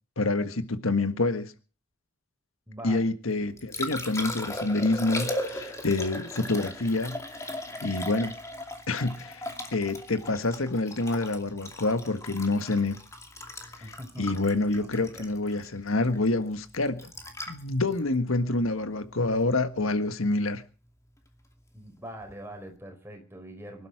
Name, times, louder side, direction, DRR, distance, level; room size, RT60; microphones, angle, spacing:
voice 1, 0.2-1.5 2.8-7.6 7.8-8.3 8.9-13.0 14.2-17.1 17.5-20.6, left 2 dB, 90° left, 1.6 m, -27 dB
voice 2, 2.7-3.1 13.8-14.4 14.8-15.2 21.7-23.9, right 1 dB, 10° right, 5.1 m, -43 dB
Liquid, 3.3-19.4 22.2-22.3, left 1 dB, 15° left, 2.5 m, -38 dB
24.0 x 12.5 x 4.9 m
head